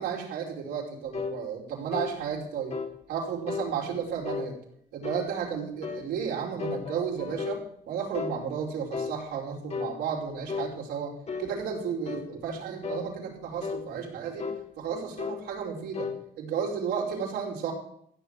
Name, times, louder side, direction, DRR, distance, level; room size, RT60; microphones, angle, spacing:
voice 1, 0.0-2.8 3.1-4.5 4.9-11.1 11.4-14.5 14.8-16.1 16.4-17.7, right 7 dB, 75° right, -1 dB, 5.6 m, -33 dB
sound 1, 1.1-1.4 1.9-2.2 2.7-2.9 3.5-3.7 4.3-4.5 5.0-5.3 5.8-6.1 6.6-7.6 8.1-8.4 8.9-9.2 9.7-9.9 10.5-10.7 11.3-11.5 12.1-12.3 12.8-13.1 13.6-13.9 14.4-14.6 15.2-15.4 15.9-16.2, left 5 dB, 40° left, 2.3 m, -34 dB
15.5 x 6.9 x 9.7 m, 0.69 s
cardioid pair, 110°, 17 cm